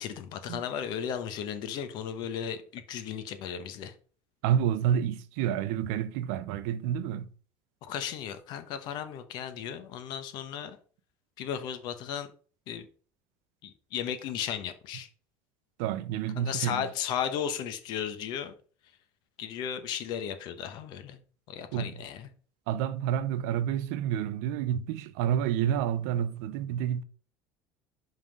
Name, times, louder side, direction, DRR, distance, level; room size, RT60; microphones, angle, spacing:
voice 1, 0.0-3.9 7.8-10.8 11.4-12.3 12.7-12.9 13.6-15.1 16.4-18.5 19.4-21.2 21.5-22.3, left 9 dB, 60° left, 1.0 m, -35 dB
voice 2, 4.4-7.3 15.8-16.9 21.7-21.9 22.7-27.0, right 10 dB, 85° right, 0.6 m, -29 dB
5.5 x 3.7 x 5.2 m
cardioid pair, 140°, 8 cm